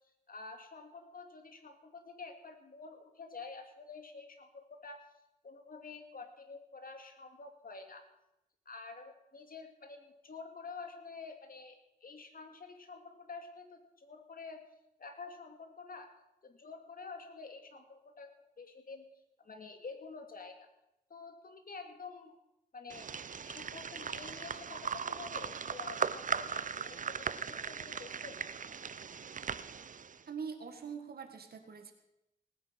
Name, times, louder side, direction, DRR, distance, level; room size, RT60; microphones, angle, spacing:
voice 1, 0.3-5.1 5.4-8.1 8.7-14.6 15.0-16.1 16.4-19.1 19.4-20.7 21.1-22.3 22.7-23.1 23.4-28.4, left 4 dB, 65° left, 5 dB, 2.3 m, -49 dB
sound 1, 22.9-30.2, right 6 dB, 55° right, 0.6 m, -38 dB
voice 2, 30.3-31.9, right 6 dB, 75° right, 6 dB, 1.8 m, -43 dB
19.0 x 9.4 x 5.8 m, 0.88 s
cardioid pair, 55°, 16 cm